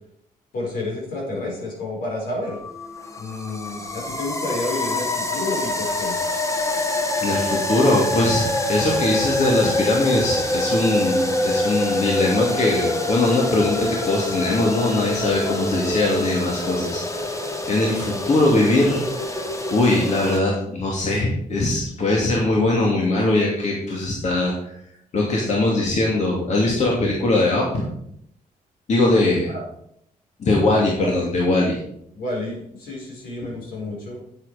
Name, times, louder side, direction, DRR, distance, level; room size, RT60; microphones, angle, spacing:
voice 1, 0.5-2.6 3.2-6.2 29.1-29.6 31.0-31.1 32.1-34.2, left 2 dB, 80° left, -2 dB, 5.2 m, -30 dB
sound 1, 2.5-20.4, left 1 dB, 20° left, 1.5 m, -25 dB
voice 2, 7.2-8.4 8.7-17.4 17.7-19.0 19.3-19.4 19.7-24.7 25.1-27.9 28.9-29.5 30.4-31.8, left 2 dB, 50° left, -2 dB, 2.6 m, -21 dB
9.0 x 8.1 x 5.1 m, 0.71 s
cardioid pair, 95°, 15 cm